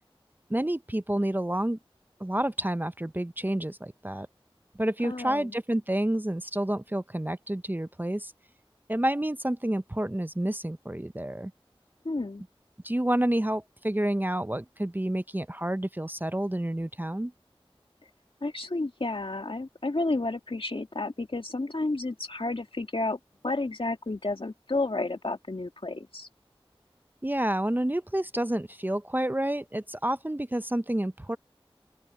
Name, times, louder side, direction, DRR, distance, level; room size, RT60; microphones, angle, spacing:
voice 1, 0.5-1.8 2.2-4.3 4.8-8.3 8.9-11.5 12.8-17.3 27.2-31.4, right 1 dB, 20° right, 0.6 m, -29 dB
voice 2, 5.0-5.5 12.0-12.4 18.4-23.2 23.4-26.3, left 2 dB, 65° left, 2.0 m, -31 dB
open air
wide cardioid pair, 40°, 10 cm